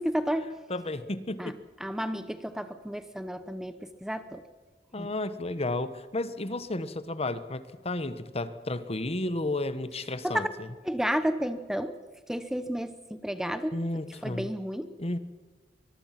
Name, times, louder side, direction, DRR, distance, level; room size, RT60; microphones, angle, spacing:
voice 1, 0.0-0.6 1.4-1.5 1.8-4.4 5.0-5.1 10.2-10.5 10.8-12.0 12.3-13.8 14.2-14.9, equal, 5° right, 11 dB, 0.9 m, -31 dB
voice 2, 0.7-1.6 4.9-10.7 13.7-14.5 15.0-15.2, left 2 dB, 35° left, 13 dB, 1.2 m, -32 dB
24.5 x 21.5 x 5.9 m, 1.4 s
head